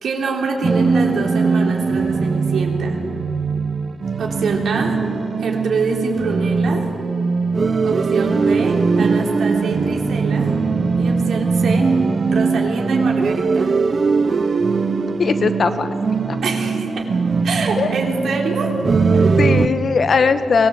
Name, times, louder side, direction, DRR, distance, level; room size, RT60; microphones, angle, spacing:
voice 1, 0.0-3.0 4.2-5.0 5.4-6.9 7.8-10.5 11.0-11.9 12.3-13.7 16.4-17.1 17.4-18.7 19.1-19.4, right 4 dB, 75° right, 0 dB, 3.4 m, -25 dB
sound 1, 0.6-19.7, right 4 dB, 40° right, 0.7 m, -20 dB
voice 2, 15.2-15.9 16.3-16.4 17.8-17.9 19.4-20.7, left 5 dB, 50° left, 9 dB, 1.2 m, -18 dB
24.0 x 19.0 x 7.8 m, 2.9 s
wide cardioid pair, 140°, 0 cm